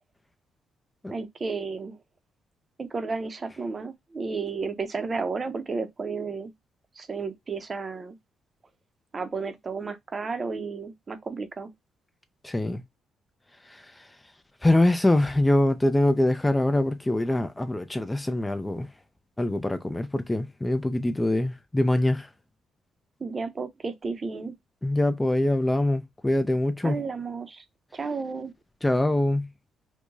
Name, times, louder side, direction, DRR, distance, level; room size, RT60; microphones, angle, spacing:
voice 1, 1.1-2.0 2.8-6.5 7.0-8.2 9.1-11.7 23.2-24.5 26.8-27.6 27.9-28.5, right 4 dB, 35° right, 0.7 m, -32 dB
voice 2, 12.4-12.8 13.7-13.8 14.6-18.9 19.4-22.3 24.8-27.0 28.8-29.5, left 1 dB, 10° left, 0.4 m, -24 dB
4.6 x 2.2 x 2.6 m
cardioid pair, 90°, 0 cm